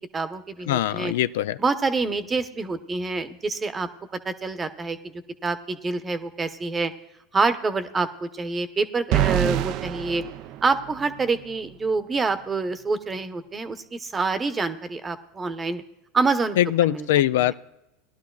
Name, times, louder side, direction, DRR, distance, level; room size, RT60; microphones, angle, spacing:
voice 1, 0.1-1.1 1.6-3.9 4.2-5.1 5.4-6.9 7.3-10.2 10.6-15.8 16.1-16.6 16.8-17.1 17.4-17.5, right 4 dB, 20° right, 10 dB, 0.9 m, -26 dB
voice 2, 0.7-1.6 16.6-17.5, left 13 dB, 80° left, 14 dB, 0.3 m, -22 dB
sound 1, 9.1-11.3, right 13 dB, 55° right, 0.4 m, -26 dB
18.5 x 11.5 x 2.3 m, 0.91 s
hypercardioid pair, 100°, 0 cm